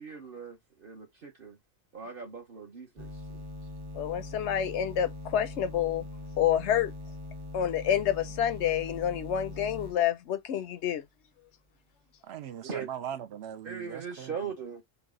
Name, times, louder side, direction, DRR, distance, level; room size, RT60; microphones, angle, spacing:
voice 1, 0.0-1.6 1.9-3.4 12.6-12.9 13.6-14.8, right 6 dB, 45° right, 1.1 m, -40 dB
sound 1, 3.0-10.0, left 1 dB, 25° right, 0.7 m, -42 dB
voice 2, 3.9-6.0 6.4-6.9 7.5-11.0, left 10 dB, 70° left, 0.8 m, -28 dB
voice 3, 12.2-14.5, right 9 dB, 65° right, 0.8 m, -40 dB
4.0 x 2.4 x 3.6 m
omnidirectional pair, 1.3 m